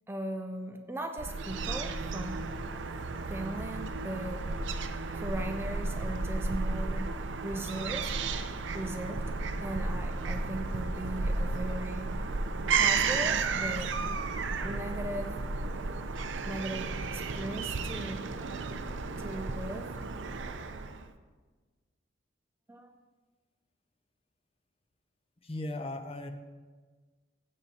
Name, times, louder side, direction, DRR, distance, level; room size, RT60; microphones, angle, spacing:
voice 1, 0.1-2.5 3.3-4.4 5.1-7.1 7.4-8.1 8.7-9.2 9.6-12.2 12.8-13.9 14.6-15.4 16.5-18.3 19.2-19.9 22.7-23.0, right 1 dB, 10° right, 5 dB, 0.4 m, -38 dB
Fowl / Gull seagull, 1.2-21.1, right 4 dB, 70° right, 0.6 m, -33 dB
voice 2, 25.4-26.3, left 1 dB, 30° left, 7 dB, 0.6 m, -37 dB
15.5 x 8.2 x 2.8 m, 1.4 s
head